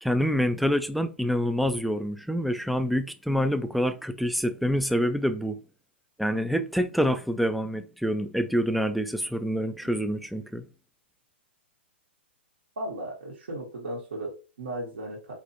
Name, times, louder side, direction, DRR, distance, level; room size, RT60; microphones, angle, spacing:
voice 1, 0.0-5.6 6.2-10.6, equal, ahead, 0.3 m, -26 dB
voice 2, 12.8-15.3, right 1 dB, 70° right, 1.3 m, -36 dB
4.0 x 3.1 x 2.6 m
figure-of-eight pair, 110°, 6 cm